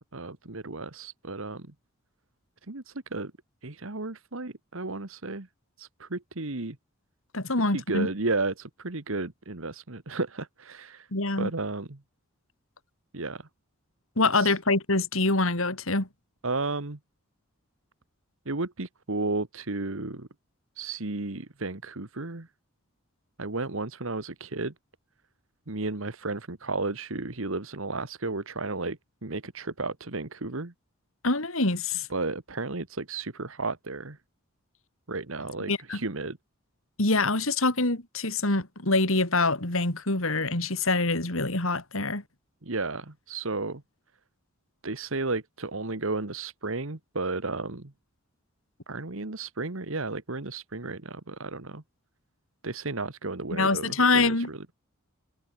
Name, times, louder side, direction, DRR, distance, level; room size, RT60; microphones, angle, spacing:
voice 1, 0.1-1.7 2.7-3.3 3.6-5.5 5.8-6.8 7.7-11.1 11.4-12.0 13.1-13.4 14.3-14.5 16.4-17.0 18.4-20.3 20.8-22.5 23.4-24.7 25.7-30.7 32.1-34.2 35.1-36.4 42.6-43.8 44.8-47.9 48.9-51.8 52.6-54.6, right 3 dB, 65° right, 1.6 m, -33 dB
voice 2, 7.3-8.1 11.1-11.5 14.2-16.1 31.2-32.1 35.7-36.0 37.0-42.2 53.5-54.5, left 3 dB, 70° left, 3.7 m, -25 dB
head